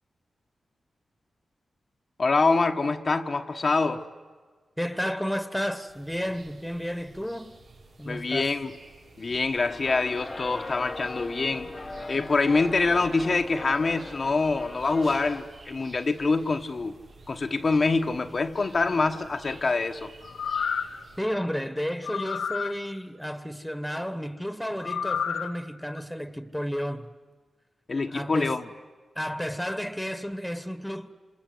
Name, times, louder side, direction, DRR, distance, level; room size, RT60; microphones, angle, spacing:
voice 1, 2.2-4.1 8.0-8.7 9.2-11.7 12.1-17.0 17.3-20.1 27.9-28.7, left 3 dB, 50° left, 1.2 m, -25 dB
voice 2, 4.8-7.5 8.0-8.5 21.2-27.1 28.1-28.5 29.1-31.1, equal, ahead, 1.5 m, -32 dB
sound 1, 5.9-21.2, right 2 dB, 75° right, 7.3 m, -50 dB
sound 2, 9.6-15.4, left 2 dB, 30° left, 1.0 m, -40 dB
sound 3, 20.2-21.0 22.0-22.7 24.8-25.5 26.0-26.1, left 7 dB, 90° left, 1.2 m, -30 dB
28.0 x 27.0 x 7.9 m
cardioid pair, 70°, 0 cm